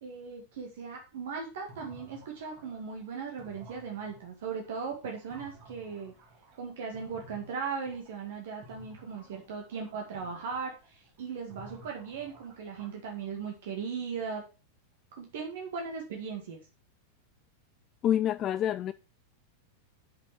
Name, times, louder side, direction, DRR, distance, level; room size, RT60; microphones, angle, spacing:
voice 1, 0.0-6.1 6.6-14.4 15.2-16.6, right 5 dB, 55° right, 2.0 m, -38 dB
sound 1, 1.7-8.4 8.6-13.6, right 1 dB, 40° right, 3.1 m, -54 dB
voice 2, 18.0-18.9, left 10 dB, 30° left, 0.3 m, -27 dB
6.8 x 5.7 x 5.9 m
figure-of-eight pair, 90°, 0 cm